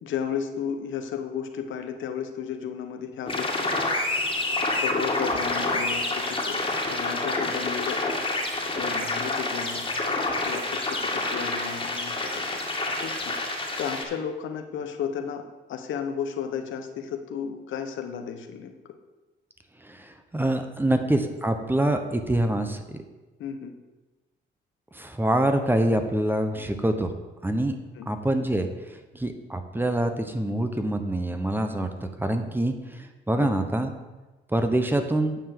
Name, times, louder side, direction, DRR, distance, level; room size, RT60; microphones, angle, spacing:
voice 1, 0.0-3.8 4.8-6.6 6.9-8.0 8.7-9.9 10.2-12.6 13.0-13.3 13.8-15.4 15.7-18.9 23.4-23.7 28.0-28.1 33.4-33.5, left 7 dB, 75° left, 6 dB, 1.0 m, -33 dB
sound 1, 3.3-14.0, left 2 dB, 25° left, 2.0 m, -28 dB
voice 2, 19.8-23.0 24.9-27.1 27.4-27.8 28.1-28.7 29.1-33.9 34.5-35.4, right 1 dB, 10° right, 7 dB, 1.0 m, -25 dB
9.2 x 4.5 x 7.6 m, 1.1 s
cardioid pair, 90°, 20 cm